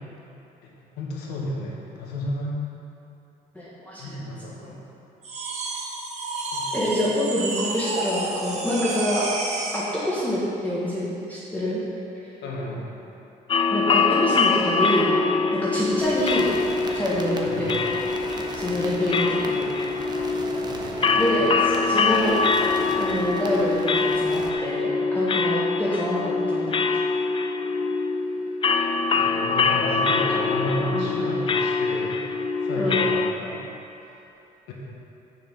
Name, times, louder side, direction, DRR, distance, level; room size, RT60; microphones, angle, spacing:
voice 1, 0.6-2.5 4.0-4.8 6.5-6.7 12.4-12.9 17.4-17.7 20.7-21.4 29.1-32.2 32.6-33.6 34.7-34.8, left 1 dB, 90° left, -3 dB, 1.6 m, -32 dB
voice 2, 3.5-4.4 6.7-9.3 9.7-11.8 13.7-15.1 15.5-16.5 16.9-17.9 18.6-19.7 21.2-22.4 23.0-26.8 30.0-30.4 30.6-31.1 32.8-33.0, equal, 10° left, -8 dB, 1.5 m, -26 dB
sound 1, 5.2-9.9, right 2 dB, 40° right, 1.3 m, -30 dB
sound 2, 13.5-33.3, left 4 dB, 30° left, 0.5 m, -24 dB
sound 3, 16.0-24.5, right 2 dB, 25° right, 0.9 m, -37 dB
6.9 x 6.8 x 5.3 m, 2.9 s
cardioid pair, 110°, 17 cm